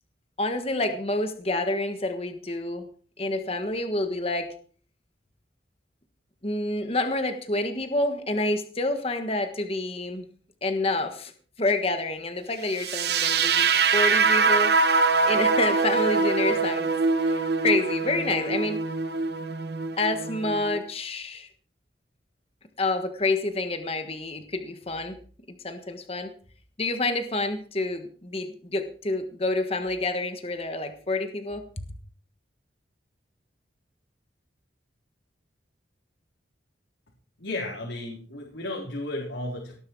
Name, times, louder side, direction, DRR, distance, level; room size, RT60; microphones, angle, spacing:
voice 1, 0.4-2.8 3.2-4.5 6.4-10.3 10.6-11.3 11.6-16.9 17.2-18.8 20.0-21.5 22.8-25.2 25.6-26.3 26.8-31.6, left 2 dB, 30° left, 7 dB, 1.4 m, -28 dB
sound 1, 12.8-20.8, right 4 dB, 60° right, 1.2 m, -23 dB
voice 2, 37.4-39.8, left 1 dB, 80° left, -2 dB, 3.9 m, -33 dB
18.5 x 11.0 x 4.7 m, 0.44 s
head